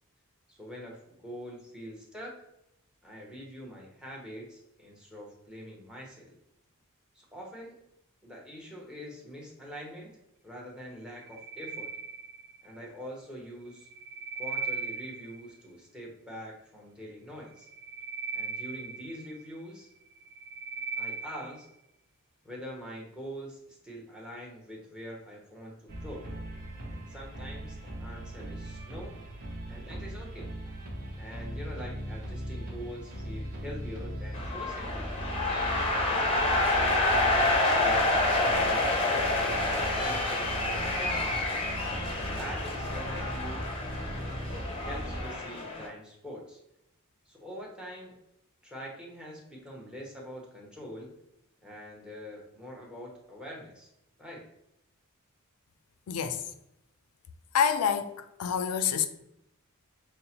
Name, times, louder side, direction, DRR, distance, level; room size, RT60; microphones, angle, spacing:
voice 1, 0.5-2.4 3.0-6.4 7.1-7.8 8.2-10.2 10.4-11.9 12.6-13.9 14.4-17.7 18.3-19.9 21.0-21.7 22.4-26.3 26.9-29.2 29.7-30.5 31.2-35.1 36.0-36.7 37.2-41.3 42.1-43.7 44.8-46.6 47.3-48.1 48.6-51.1 51.6-53.9 54.2-54.5, equal, 5° right, 0.8 m, -44 dB
sound 1, 11.1-12.8 13.7-15.5 17.5-19.6 20.1-21.6, right 5 dB, 85° right, 0.5 m, -38 dB
sound 2, 25.9-45.2, right 1 dB, 40° right, 0.7 m, -39 dB
sound 3, 34.3-45.9, left 2 dB, 25° left, 0.6 m, -28 dB
voice 2, 56.1-56.5 57.5-59.1, left 7 dB, 80° left, 0.4 m, -27 dB
5.3 x 2.1 x 2.8 m
head